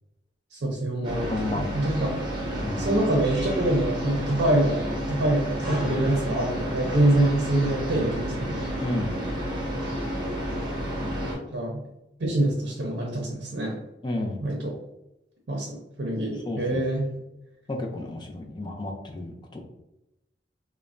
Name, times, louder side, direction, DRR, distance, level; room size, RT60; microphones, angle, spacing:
voice 1, 0.5-2.2 2.8-8.7 11.5-11.9 12.2-13.8 14.4-14.7 15.5-17.1, right 1 dB, 80° right, -1 dB, 0.6 m, -25 dB
sound 1, 1.0-11.3, equal, 25° right, 0.7 m, -30 dB
voice 2, 1.2-1.7 2.6-2.9 8.8-9.2 11.0-11.5 14.0-14.4 16.5-16.8 17.7-19.6, left 1 dB, 25° left, 1 dB, 0.4 m, -32 dB
3.2 x 2.1 x 2.4 m, 0.91 s
head